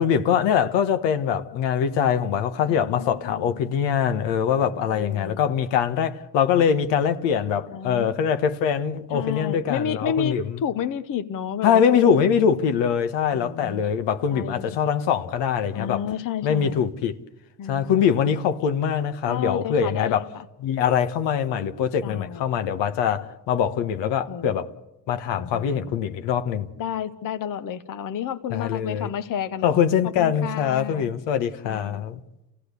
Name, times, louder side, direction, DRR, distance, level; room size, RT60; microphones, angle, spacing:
voice 1, 0.0-10.6 11.6-16.1 16.4-17.2 17.7-20.3 20.6-24.7 25.1-26.7 28.5-29.1 29.6-32.2, left 8 dB, 75° left, 1.3 m, -23 dB
voice 2, 2.7-3.6 4.6-5.4 7.7-8.1 9.1-12.3 13.3-13.8 14.3-14.8 15.7-16.8 17.6-18.0 18.6-18.7 19.3-20.2 22.0-22.4 24.3-24.5 25.4-25.9 26.8-31.1 31.6-32.0, left 8 dB, 50° left, 1.0 m, -31 dB
29.0 x 16.0 x 8.3 m
supercardioid pair, 75°, 43 cm